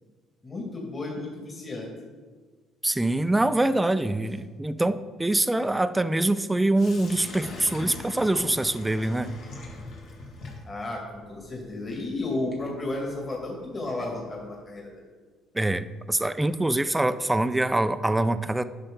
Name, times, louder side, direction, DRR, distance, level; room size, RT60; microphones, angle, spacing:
voice 1, 0.4-1.9 10.6-14.9, left 2 dB, 30° left, -2 dB, 2.0 m, -33 dB
voice 2, 2.8-9.4 15.5-18.6, right 1 dB, 10° right, 12 dB, 0.4 m, -24 dB
Sink (filling or washing), 6.8-14.7, left 2 dB, 65° left, 1.6 m, -43 dB
9.2 x 5.6 x 3.8 m, 1.4 s
supercardioid pair, 75°, 0 cm